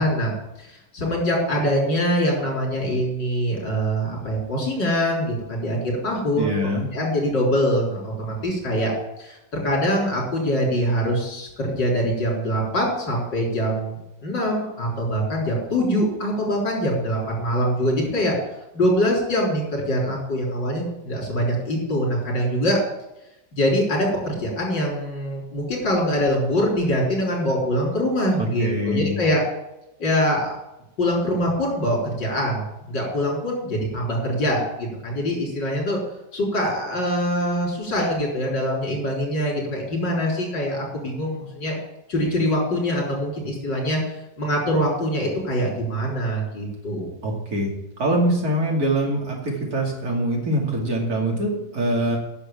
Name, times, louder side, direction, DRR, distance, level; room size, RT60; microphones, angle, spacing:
voice 1, 0.0-5.8 6.0-6.5 6.9-8.9 9.2-18.3 18.7-22.8 23.5-29.4 30.0-30.5 31.0-36.0 36.3-41.8 42.1-44.0 44.4-47.1, equal, 85° left, -2 dB, 4.5 m, -24 dB
voice 2, 6.4-6.9 28.4-29.2 47.2-47.7 48.0-52.2, right 1 dB, 55° right, -1 dB, 3.1 m, -24 dB
9.9 x 6.4 x 8.8 m, 0.91 s
omnidirectional pair, 1.9 m